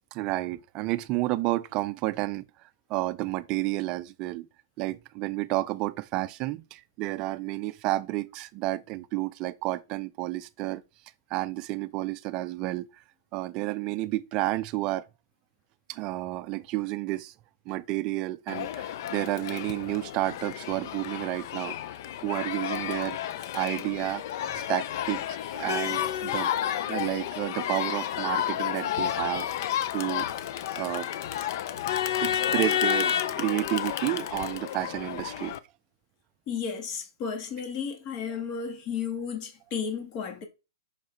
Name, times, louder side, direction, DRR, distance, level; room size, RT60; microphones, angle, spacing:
voice 1, 0.1-2.5 2.9-4.5 4.8-10.8 11.3-12.9 13.3-15.0 15.9-17.3 17.7-21.7 22.2-24.2 24.5-26.5 26.9-29.5 29.9-30.3 30.8-31.1 32.2-35.5, right 17 dB, 35° right, 0.4 m, -31 dB
Crowd, 18.5-35.6, left 10 dB, 55° left, 0.6 m, -31 dB
voice 2, 36.5-40.4, left 6 dB, 40° left, 1.7 m, -33 dB
5.7 x 4.7 x 4.5 m
hypercardioid pair, 135°, 2 cm